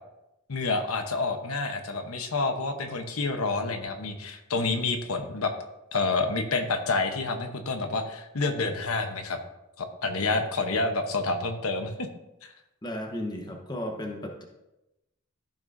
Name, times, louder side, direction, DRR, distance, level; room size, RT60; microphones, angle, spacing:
voice 1, 0.5-5.5 5.9-9.4 9.8-12.1, left 3 dB, 80° left, 6 dB, 1.0 m, -28 dB
voice 2, 12.8-14.4, left 1 dB, 20° left, 2 dB, 1.0 m, -34 dB
14.5 x 6.1 x 2.7 m, 0.93 s
head